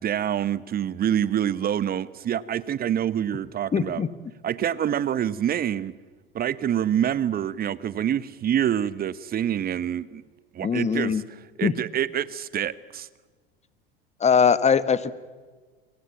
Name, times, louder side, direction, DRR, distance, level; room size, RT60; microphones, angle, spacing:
voice 1, 0.0-4.0 4.4-5.9 6.3-10.2 10.5-11.2 11.6-13.1, right 10 dB, 30° right, 17 dB, 1.1 m, -26 dB
voice 2, 3.7-4.1 10.6-11.2 11.6-11.7 14.2-15.1, left 6 dB, 20° left, 15 dB, 1.5 m, -21 dB
28.5 x 23.5 x 7.3 m, 1.4 s
figure-of-eight pair, 80°, 30 cm